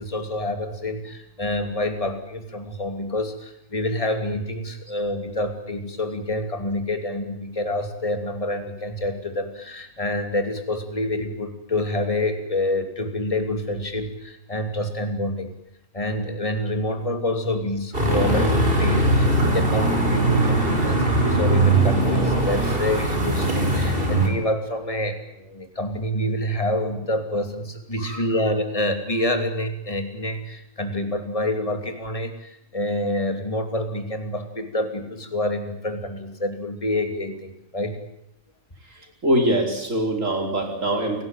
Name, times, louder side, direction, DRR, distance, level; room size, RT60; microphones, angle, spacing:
voice 1, 0.0-15.5 15.9-38.0, left 1 dB, 25° left, 6 dB, 2.9 m, -27 dB
sound 1, 17.9-24.3, right 2 dB, 45° right, 5.1 m, -20 dB
voice 2, 39.2-41.2, right 1 dB, 75° right, 3 dB, 5.3 m, -23 dB
29.0 x 18.5 x 9.1 m, 0.79 s
omnidirectional pair, 1.4 m